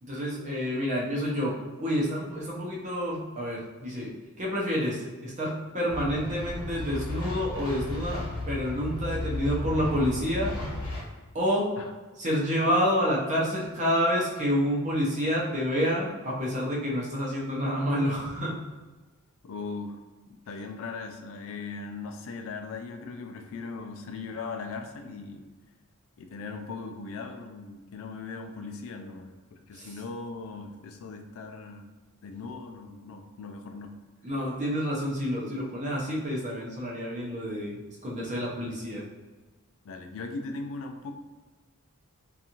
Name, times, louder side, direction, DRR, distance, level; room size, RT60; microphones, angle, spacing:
voice 1, 0.0-10.5 11.3-11.7 12.2-18.6 29.7-29.9 34.2-39.0, equal, 35° right, -5 dB, 0.7 m, -28 dB
sound 1, 5.9-11.0, left 2 dB, 85° left, 0.9 m, -34 dB
voice 2, 19.4-20.0 20.3-25.4 26.2-31.9 32.2-33.9 39.8-41.1, left 4 dB, 65° left, 5 dB, 0.3 m, -39 dB
2.6 x 2.4 x 2.8 m, 1.2 s
head